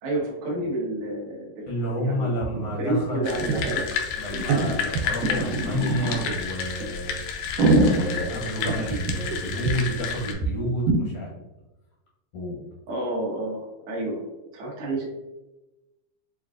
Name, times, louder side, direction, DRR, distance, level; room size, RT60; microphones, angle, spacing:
voice 1, 0.0-3.8 12.9-14.3 14.5-15.0, right 1 dB, 65° right, -3 dB, 1.4 m, -30 dB
voice 2, 1.7-3.7 4.2-7.2 7.9-11.3 12.3-12.6, equal, 70° left, -4 dB, 1.4 m, -30 dB
sound 1, 2.4-2.5 2.7-2.8 3.4-3.8 4.3-6.3 6.8-6.9 7.3-9.3 9.6-9.7 10.0-10.1 10.4-10.5 10.9-11.0, right 2 dB, 85° right, 2.1 m, -23 dB
sound 2, 3.2-10.3, left 7 dB, 90° left, 2.2 m, -31 dB
6.3 x 2.3 x 2.4 m, 1.0 s
omnidirectional pair, 3.6 m